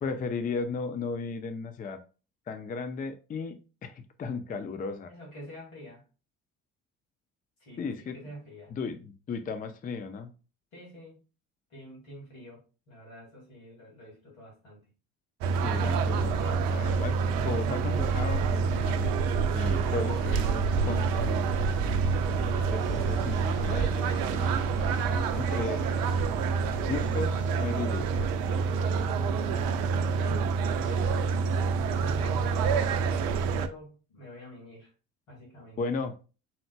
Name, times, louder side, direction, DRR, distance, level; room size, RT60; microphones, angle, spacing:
voice 1, 0.0-2.0 2.5-5.1 7.8-8.2 8.7-10.3 15.6-17.2 17.4-21.5 22.7-24.5 25.1-25.8 26.9-28.3 35.8-36.1, left 4 dB, 20° left, 9 dB, 0.5 m, -35 dB
voice 2, 5.1-6.0 7.6-8.7 10.7-11.2 11.7-14.8 28.7-29.6 30.2-30.5 30.8-31.2 31.9-33.2 33.5-34.9 35.3-35.8, equal, 75° left, -3 dB, 2.4 m, -47 dB
sound 1, 15.4-33.7, right 5 dB, 55° right, 0.6 m, -27 dB
sound 2, 19.8-27.0, left 9 dB, 50° left, 0.9 m, -44 dB
5.7 x 3.8 x 2.2 m, 0.33 s
figure-of-eight pair, 55°, 41 cm